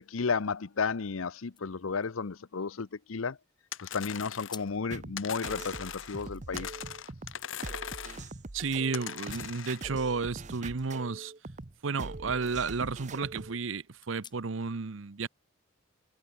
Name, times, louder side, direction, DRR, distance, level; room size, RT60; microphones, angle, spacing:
voice 1, 0.0-3.4 3.8-6.8, left 5 dB, 85° left, 0.7 m, -33 dB
sound 1, 2.0-3.5 3.9-4.0 4.4-4.9 5.3-6.7 7.3-7.5 8.9-10.0 10.3-12.1 12.4-12.5 13.0-13.1 14.0-14.7, left 7 dB, 20° left, 1.9 m, -54 dB
sound 2, 3.7-4.7 5.2-6.3 6.6-8.3 8.9-9.9, left 9 dB, 70° left, 1.3 m, -40 dB
sound 3, 4.9-13.6, right 2 dB, 35° right, 0.9 m, -43 dB
voice 2, 8.5-11.3 11.8-15.3, right 4 dB, 70° right, 0.8 m, -32 dB
head